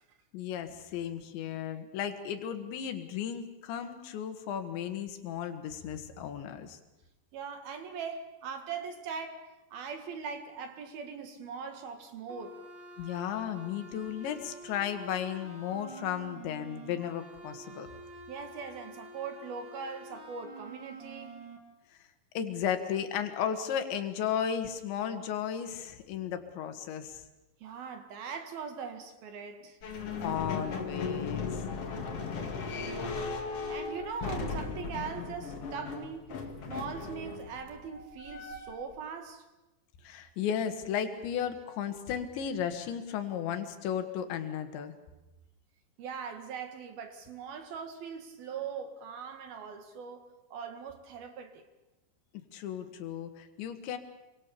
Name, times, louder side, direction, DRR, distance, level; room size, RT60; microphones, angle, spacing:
voice 1, 0.3-6.8 13.0-17.9 22.4-27.2 30.2-31.6 40.0-44.9 52.5-54.0, left 9 dB, 70° left, 3.9 m, -34 dB
voice 2, 7.3-12.6 18.3-21.4 27.6-29.8 33.7-36.4 36.7-39.5 46.0-51.6, right 6 dB, 60° right, 3.2 m, -41 dB
sound 1, 12.3-21.6, right 2 dB, 30° right, 2.7 m, -48 dB
sound 2, 29.8-38.9, left 4 dB, 45° left, 2.2 m, -37 dB
26.5 x 24.0 x 7.0 m
omnidirectional pair, 5.5 m